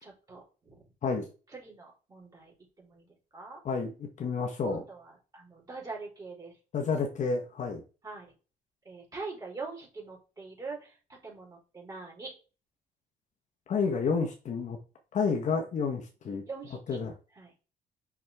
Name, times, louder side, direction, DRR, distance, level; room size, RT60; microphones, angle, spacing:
voice 1, 0.0-0.8 1.5-3.1 3.3-3.6 4.6-6.5 8.0-8.3 8.8-12.3 16.5-16.8 17.4-17.5, right 4 dB, 20° right, -3 dB, 4.3 m, -43 dB
voice 2, 3.6-4.8 6.7-7.8 13.7-14.8 15.1-16.4 16.9-17.1, left 5 dB, 45° left, 3 dB, 1.3 m, -30 dB
6.1 x 6.0 x 3.6 m, 0.34 s
cardioid pair, 110°, 17 cm